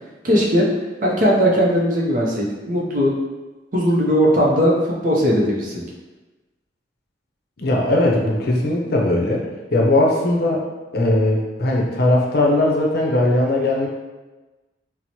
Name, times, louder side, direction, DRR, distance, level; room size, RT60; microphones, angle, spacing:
voice 1, 0.2-0.7 1.0-3.1 3.7-5.8, equal, 45° right, -3 dB, 0.6 m, -18 dB
voice 2, 7.6-9.4 9.7-10.6 10.9-13.9, left 1 dB, 55° left, -1 dB, 0.6 m, -19 dB
2.9 x 2.0 x 4.1 m, 1.2 s
head